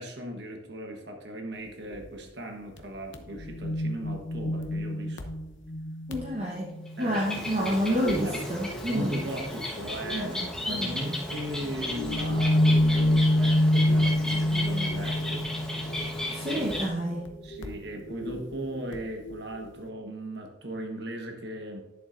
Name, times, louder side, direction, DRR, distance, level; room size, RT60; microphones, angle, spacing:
voice 1, 0.0-5.2 7.0-8.5 8.9-15.5 16.5-16.7 17.4-21.8, right 1 dB, 60° right, 2 dB, 1.2 m, -38 dB
sound 1, 1.9-2.1 2.8-2.9 3.1-7.3 7.7-8.4 8.7-10.4 11.7-19.7, left 1 dB, 80° left, 0.8 m, -28 dB
voice 2, 6.1-6.7 7.0-9.2 10.1-11.2 16.3-17.3, equal, 35° right, -3 dB, 1.0 m, -29 dB
Bird, 6.9-16.9, left 1 dB, 5° left, 1.3 m, -35 dB
10.5 x 7.0 x 2.6 m, 0.98 s
head